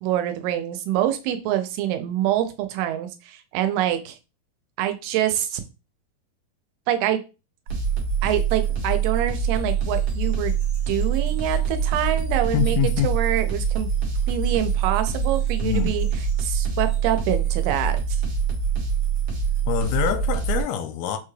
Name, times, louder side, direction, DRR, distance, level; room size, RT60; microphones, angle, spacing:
voice 1, 0.0-4.2 4.8-5.6 6.9-7.2 8.2-10.5 10.9-12.8 13.0-13.9 14.3-16.1 16.4-18.0, right 11 dB, 85° right, 2.6 m, -25 dB
sound 1, 7.7-20.6, right 6 dB, 60° right, 1.4 m, -24 dB
voice 2, 12.5-13.1 15.6-16.0 19.7-21.2, left 9 dB, 85° left, 2.5 m, -25 dB
6.0 x 2.3 x 3.2 m
omnidirectional pair, 4.4 m